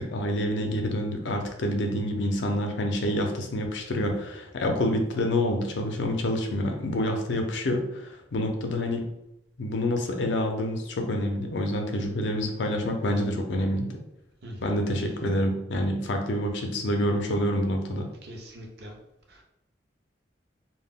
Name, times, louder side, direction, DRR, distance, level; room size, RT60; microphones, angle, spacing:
voice 1, 0.0-9.1 9.6-14.0 14.6-18.1, left 1 dB, 70° left, 3 dB, 0.5 m, -27 dB
voice 2, 14.4-14.8 18.2-19.0 19.3-19.4, equal, 55° right, 1 dB, 0.5 m, -42 dB
2.1 x 2.1 x 3.5 m, 0.85 s
head